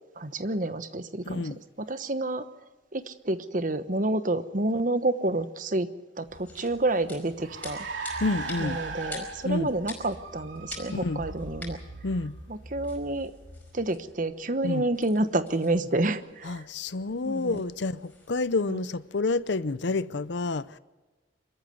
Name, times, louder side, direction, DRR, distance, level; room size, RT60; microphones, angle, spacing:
voice 1, 0.2-2.5 2.9-5.9 6.2-7.9 8.6-11.8 12.5-13.3 13.7-16.7 17.2-17.6 18.7-18.8, right 2 dB, 45° right, 1.1 m, -29 dB
voice 2, 1.3-1.6 8.2-8.8 9.4-9.7 10.9-11.2 12.0-12.3 14.6-14.9 16.4-20.8, left 3 dB, 70° left, 0.7 m, -29 dB
sound 1, 6.2-18.4, left 3 dB, 10° left, 5.0 m, -48 dB
Car, 6.3-14.1, right 2 dB, 80° right, 2.8 m, -39 dB
26.0 x 14.0 x 7.9 m
head